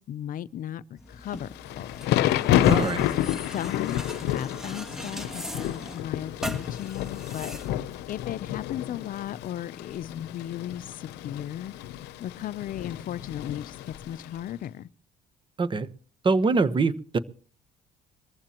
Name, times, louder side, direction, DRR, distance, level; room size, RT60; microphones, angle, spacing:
voice 1, 0.0-1.5 1.8-2.1 2.7-3.0 3.5-11.7 12.2-14.9, left 11 dB, 55° left, 0.6 m, -36 dB
sound 1, 1.0-8.6, equal, 5° right, 2.1 m, -40 dB
Thunder / Rain, 1.3-14.4, left 12 dB, 90° left, 0.8 m, -29 dB
voice 2, 2.6-3.1 15.6-15.9 16.2-17.2, right 4 dB, 30° right, 1.1 m, -24 dB
23.5 x 14.5 x 3.0 m
cardioid pair, 110°, 17 cm